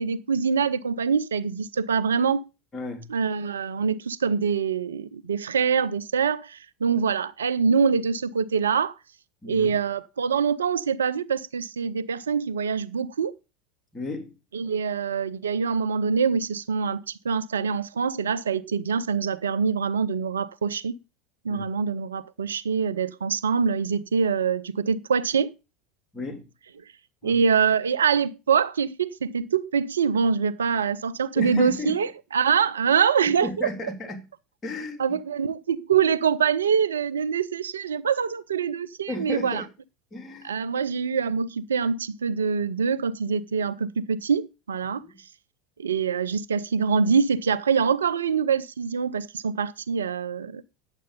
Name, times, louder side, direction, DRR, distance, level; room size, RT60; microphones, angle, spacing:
voice 1, 0.0-2.4 3.1-8.9 9.5-13.3 14.5-21.0 21.4-25.5 27.2-33.7 35.0-39.6 40.4-45.0 45.8-50.6, right 6 dB, 80° right, 0.5 m, -24 dB
voice 2, 2.7-3.1 9.4-9.8 13.9-14.3 21.5-21.7 26.1-26.5 27.2-27.4 31.3-31.9 33.4-34.2 34.6-35.2 39.1-39.7 40.1-40.6 44.9-45.2, left 2 dB, 25° left, 3.1 m, -34 dB
9.8 x 7.6 x 5.3 m
hypercardioid pair, 80°, 0 cm